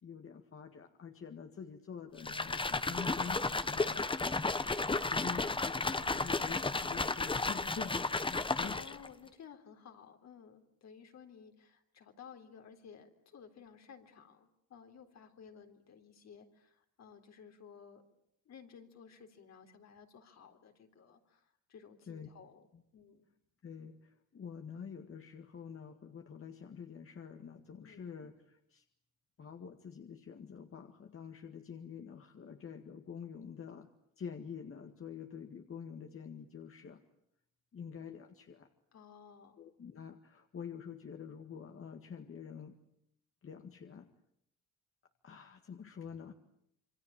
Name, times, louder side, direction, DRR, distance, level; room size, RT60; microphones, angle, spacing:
voice 1, 0.0-4.1 5.0-8.8 22.1-22.3 22.7-22.8 23.6-28.8 29.4-33.9 34.2-37.0 37.7-38.7 39.6-42.8 43.4-44.1 45.2-46.3, left 7 dB, 45° left, 5 dB, 2.0 m, -47 dB
sound 1, 2.2-9.1, left 3 dB, 15° left, 1.1 m, -33 dB
voice 2, 8.7-18.0 18.5-22.7 22.9-23.3 27.8-28.1 38.9-39.6, left 7 dB, 60° left, 5 dB, 3.8 m, -55 dB
27.5 x 24.0 x 8.8 m, 0.74 s
cardioid pair, 90°, 30 cm